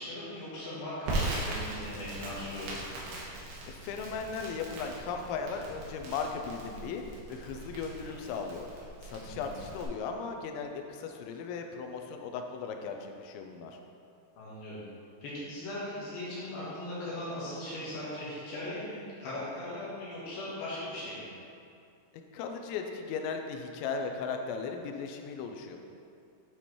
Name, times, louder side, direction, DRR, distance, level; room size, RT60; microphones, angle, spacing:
voice 1, 0.0-2.7 8.0-8.2 9.2-9.5 14.4-14.8 15.2-21.3, left 1 dB, 70° left, -8 dB, 2.6 m, -39 dB
Crackle, 1.1-9.9, right 2 dB, 70° right, 2.7 m, -39 dB
voice 2, 3.7-7.0 7.3-8.7 9.0-13.8 22.3-25.8, left 5 dB, 85° left, 4 dB, 2.9 m, -37 dB
9.4 x 4.2 x 3.0 m, 2.5 s
omnidirectional pair, 5.2 m